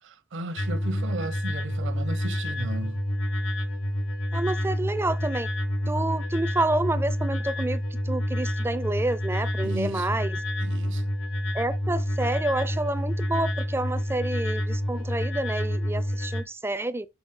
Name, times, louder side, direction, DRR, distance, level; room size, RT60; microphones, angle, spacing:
voice 1, 0.0-3.0 9.6-10.2 10.6-11.1, right 1 dB, 60° right, 0.8 m, -35 dB
sound 1, 0.6-16.4, equal, 85° left, 1.5 m, -28 dB
voice 2, 4.3-5.5 5.9-7.8 8.1-10.4 11.5-17.1, right 2 dB, 10° right, 0.4 m, -28 dB
6.9 x 4.5 x 3.6 m
head